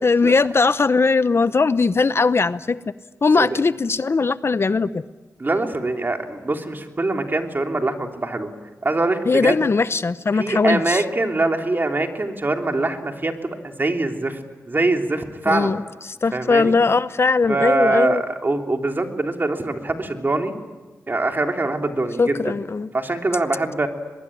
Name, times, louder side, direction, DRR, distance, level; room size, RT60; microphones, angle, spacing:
voice 1, 0.0-2.8 3.2-5.0 9.3-11.0 15.5-15.8 16.1-18.2 22.2-22.9, left 4 dB, 45° left, 15 dB, 0.7 m, -19 dB
voice 2, 5.4-8.5 8.8-9.6 10.4-14.4 14.7-15.7 16.3-16.7 17.5-20.5 21.1-22.5 22.9-23.9, right 2 dB, 35° right, 4 dB, 3.2 m, -23 dB
23.5 x 22.0 x 10.0 m, 1.2 s
cardioid pair, 60°, 6 cm